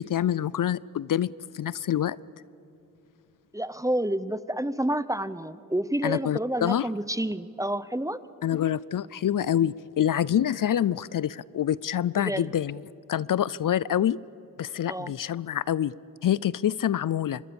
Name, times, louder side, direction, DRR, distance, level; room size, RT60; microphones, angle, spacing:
voice 1, 0.0-2.2 6.0-6.9 8.4-12.8 13.1-14.2 14.6-15.9 16.2-17.4, left 10 dB, 65° left, 21 dB, 0.5 m, -26 dB
voice 2, 3.5-8.2 12.2-12.5 14.9-15.1, right 1 dB, 10° right, 16 dB, 0.6 m, -29 dB
26.0 x 21.5 x 7.0 m, 2.8 s
wide cardioid pair, 85°, 35 cm